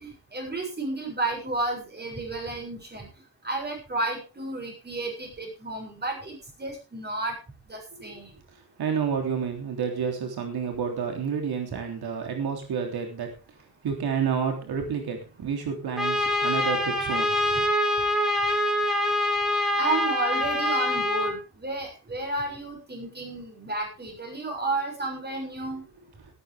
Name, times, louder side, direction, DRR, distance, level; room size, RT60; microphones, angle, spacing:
voice 1, 0.0-3.1 3.4-7.4 7.7-8.3 19.8-25.8, right 2 dB, 25° right, 2 dB, 6.9 m, -32 dB
voice 2, 8.8-13.3 13.8-17.3, right 6 dB, 90° right, 3 dB, 3.4 m, -29 dB
Trumpet, 16.0-21.3, left 1 dB, ahead, 3.5 m, -25 dB
16.0 x 13.0 x 3.6 m, 0.32 s
wide cardioid pair, 125°, 37 cm